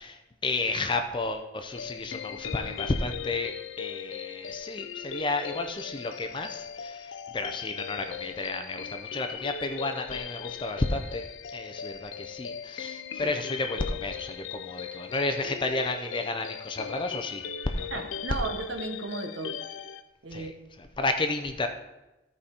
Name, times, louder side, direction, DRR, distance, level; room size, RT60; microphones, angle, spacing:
voice 1, 0.0-11.3 11.5-17.4 17.7-18.1 20.3-21.7, left 2 dB, 25° left, 6 dB, 0.5 m, -32 dB
sound 1, 1.7-20.0, left 8 dB, 80° left, 0.5 m, -39 dB
voice 2, 17.9-19.6 20.2-20.5, right 3 dB, 75° right, 6 dB, 0.9 m, -35 dB
13.0 x 5.0 x 4.3 m, 1.0 s
head